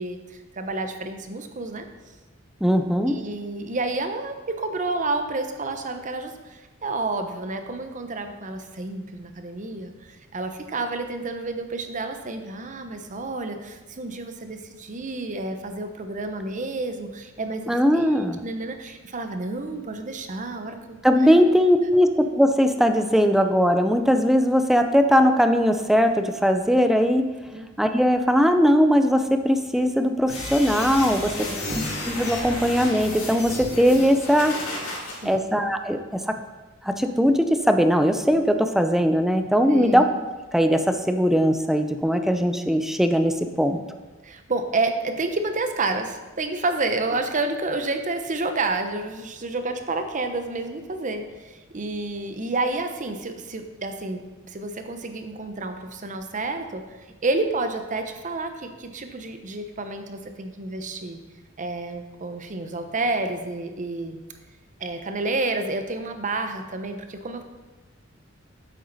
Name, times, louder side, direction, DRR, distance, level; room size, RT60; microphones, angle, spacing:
voice 1, 0.0-1.8 3.1-21.4 27.5-27.7 31.2-31.7 35.2-35.6 39.7-40.0 44.2-56.8 57.2-61.2 61.6-64.2 64.8-67.4, right 2 dB, 40° right, 7 dB, 0.8 m, -30 dB
voice 2, 2.6-3.1 17.7-18.4 21.0-27.2 27.8-31.3 31.7-34.5 35.2-36.3 36.8-40.1 40.5-43.8, equal, ahead, 7 dB, 0.5 m, -20 dB
sound 1, 30.3-35.1, left 1 dB, 80° left, 3.0 m, -32 dB
8.8 x 8.2 x 4.1 m, 1.2 s
head